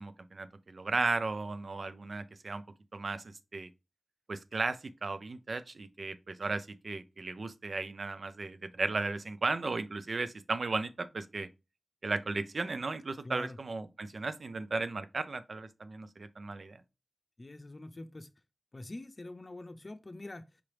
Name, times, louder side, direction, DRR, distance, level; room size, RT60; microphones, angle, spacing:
voice 1, 0.0-2.6 2.9-3.2 3.5-3.7 4.3-11.5 12.0-16.8, right 3 dB, 70° right, 0.5 m, -35 dB
voice 2, 13.2-13.6 17.4-18.3 18.7-20.6, left 2 dB, 45° left, 0.6 m, -45 dB
5.0 x 2.9 x 3.2 m
wide cardioid pair, 55°, 0 cm